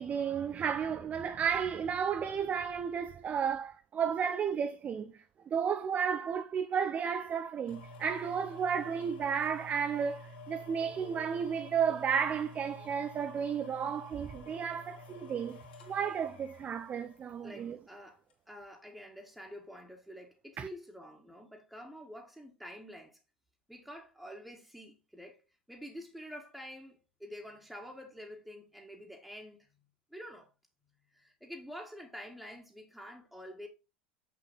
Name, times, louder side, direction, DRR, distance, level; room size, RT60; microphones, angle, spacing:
voice 1, 0.0-15.6 15.9-17.8 20.6-20.7, right 7 dB, 25° right, 0.6 m, -33 dB
sound 1, 7.7-17.7 18.3-18.4, left 1 dB, 65° left, 2.4 m, -50 dB
voice 2, 17.4-23.2 23.7-25.4 25.7-29.7 30.1-30.5 31.1-33.7, equal, ahead, 1.7 m, -48 dB
7.5 x 6.2 x 4.0 m
figure-of-eight pair, 75°, 6 cm